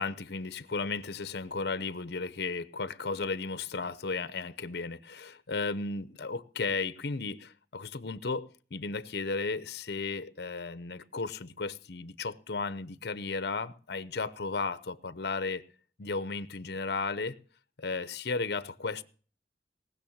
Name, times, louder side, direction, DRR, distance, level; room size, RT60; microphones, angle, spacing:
voice 1, 0.0-15.6 16.0-17.4 17.8-19.0, left 4 dB, 60° left, 0.8 m, -34 dB
19.0 x 6.6 x 7.2 m
head